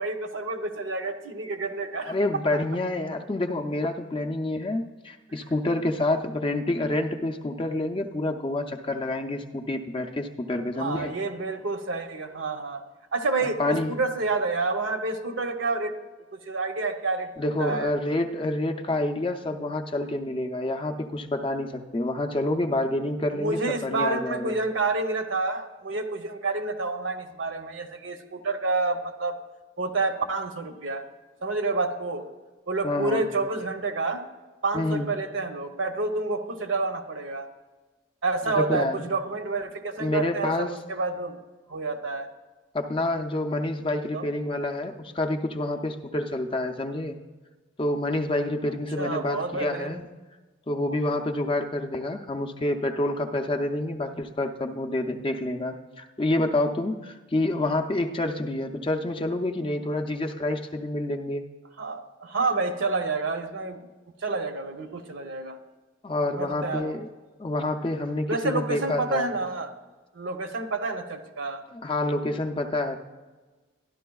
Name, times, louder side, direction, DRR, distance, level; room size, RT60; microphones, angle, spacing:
voice 1, 0.0-2.6 10.8-12.8 13.1-16.0 16.3-17.3 17.6-17.9 23.3-29.3 29.8-31.0 31.4-32.2 32.7-34.2 34.6-37.5 38.2-41.4 41.7-42.3 44.0-44.3 49.0-50.0 61.8-63.8 64.2-65.6 66.4-67.0 68.3-69.7 70.1-71.6, right 3 dB, 65° right, 6 dB, 0.7 m, -29 dB
voice 2, 2.0-11.1 13.6-13.9 17.4-24.6 32.8-33.2 34.7-35.1 38.6-39.0 40.0-40.8 42.7-47.2 47.8-50.1 50.7-61.4 66.0-67.1 67.4-69.3 71.7-73.0, left 1 dB, 25° left, 5 dB, 0.4 m, -28 dB
12.5 x 11.0 x 2.3 m, 1.3 s
head